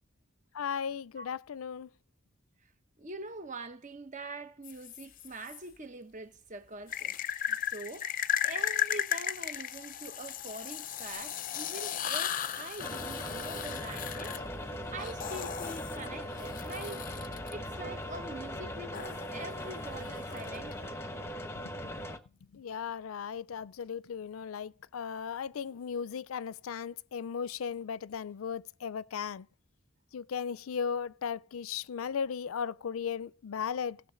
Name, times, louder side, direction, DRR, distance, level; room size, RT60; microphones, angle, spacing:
voice 1, 0.5-1.9 21.8-21.9 22.5-29.5 30.1-34.0, left 7 dB, 90° left, 0.4 m, -36 dB
voice 2, 3.0-7.1 7.5-8.1 8.4-14.3 14.9-17.0 17.5-21.2, right 2 dB, 35° right, 1.1 m, -44 dB
sound 1, 4.6-5.6 6.9-17.5 18.9-20.7, left 10 dB, 40° left, 0.5 m, -36 dB
sound 2, 12.8-22.2, equal, 15° left, 1.0 m, -40 dB
sound 3, 13.0-18.8, equal, 5° right, 0.5 m, -50 dB
18.5 x 6.9 x 3.8 m
head